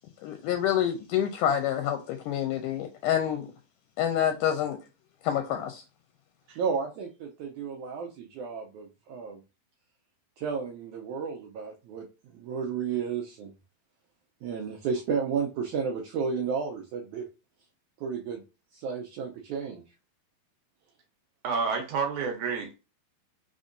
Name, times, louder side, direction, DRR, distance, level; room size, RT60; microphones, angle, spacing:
voice 1, 0.2-3.5 4.0-4.8 5.2-5.8, left 10 dB, 80° left, 2.0 m, -27 dB
voice 2, 6.6-9.4 10.4-13.5 14.4-17.3 18.0-18.4 18.7-19.8, right 6 dB, 85° right, 1.7 m, -32 dB
voice 3, 21.4-22.7, right 5 dB, 70° right, 2.0 m, -29 dB
5.2 x 3.5 x 2.5 m
omnidirectional pair, 4.1 m